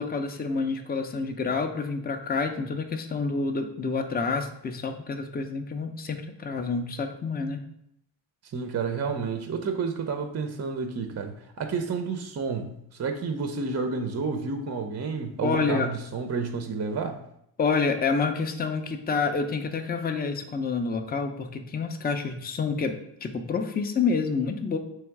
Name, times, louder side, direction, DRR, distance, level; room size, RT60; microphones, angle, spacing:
voice 1, 0.0-7.6 15.4-15.9 17.6-22.9 23.2-24.8, left 4 dB, 20° left, 6 dB, 0.5 m, -28 dB
voice 2, 8.4-17.2, right 5 dB, 35° right, 6 dB, 0.5 m, -30 dB
3.5 x 3.1 x 4.6 m, 0.76 s
cardioid pair, 75°, 49 cm